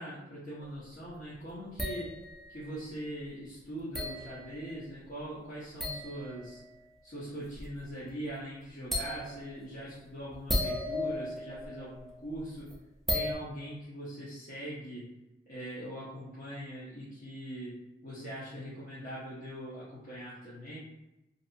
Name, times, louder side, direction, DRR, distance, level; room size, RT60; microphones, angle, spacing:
voice 1, 0.0-2.1 2.5-6.6 7.0-12.7 13.1-15.1 15.5-20.8, right 1 dB, 45° left, -11 dB, 0.8 m, -41 dB
sound 1, 1.8-2.7 3.9-4.8 5.8-6.7 7.6-7.8 8.1-8.2 8.9-9.6 10.3-12.4 12.7-12.8 13.1-13.3, left 1 dB, ahead, 0.4 m, -35 dB
2.7 x 2.5 x 2.5 m, 0.96 s
head